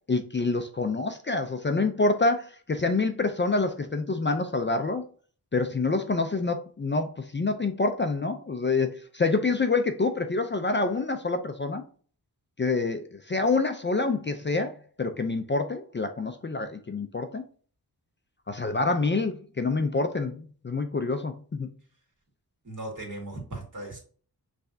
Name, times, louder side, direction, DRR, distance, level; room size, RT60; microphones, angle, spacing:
voice 1, 0.1-5.0 5.5-11.8 12.6-17.4 18.5-21.7, left 3 dB, 30° left, 7 dB, 0.4 m, -27 dB
voice 2, 22.6-24.0, right 2 dB, 50° right, -1 dB, 2.0 m, -37 dB
5.7 x 3.3 x 2.6 m, 0.43 s
wide cardioid pair, 115°, 38 cm